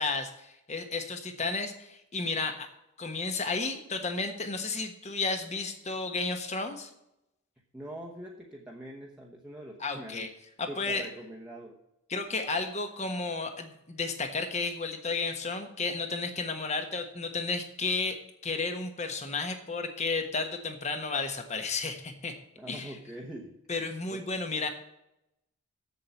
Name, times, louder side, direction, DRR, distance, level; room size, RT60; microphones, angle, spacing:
voice 1, 0.0-2.7 3.0-6.9 9.8-10.3 10.6-11.1 12.1-22.3 22.7-22.9 23.7-24.7, left 3 dB, 30° left, 6 dB, 1.3 m, -32 dB
voice 2, 7.7-10.3 10.7-11.8 22.6-24.2, right 1 dB, 5° right, -2 dB, 1.0 m, -44 dB
7.5 x 7.5 x 8.4 m, 0.84 s
head